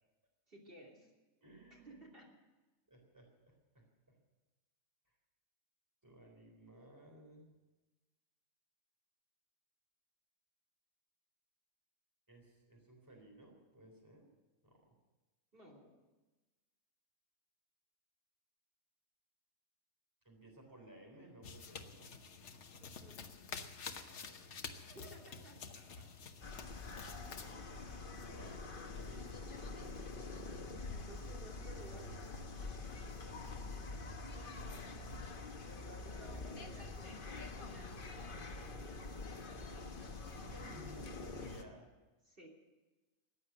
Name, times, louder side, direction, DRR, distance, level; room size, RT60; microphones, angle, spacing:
voice 1, 0.5-1.1 1.7-2.3 15.5-16.0 22.8-23.4 24.9-25.6 30.9-32.3 34.4-34.7 35.7-39.0 42.2-42.5, right 1 dB, 40° right, -1 dB, 3.1 m, -57 dB
voice 2, 1.4-2.0 2.9-4.2 6.0-7.5 12.3-14.3 14.6-15.0 20.2-22.2 24.0-24.5 25.0-25.1 25.7-26.1 27.4-27.8 28.2-30.6 31.1-31.5 32.9-34.6 40.3-41.9, right 1 dB, 15° right, 1 dB, 3.7 m, -58 dB
sound 1, 21.4-27.5, left 5 dB, 60° left, 1.3 m, -49 dB
sound 2, 26.4-41.6, left 3 dB, 40° left, 1.3 m, -46 dB
15.0 x 9.7 x 9.1 m, 1.2 s
omnidirectional pair, 1.5 m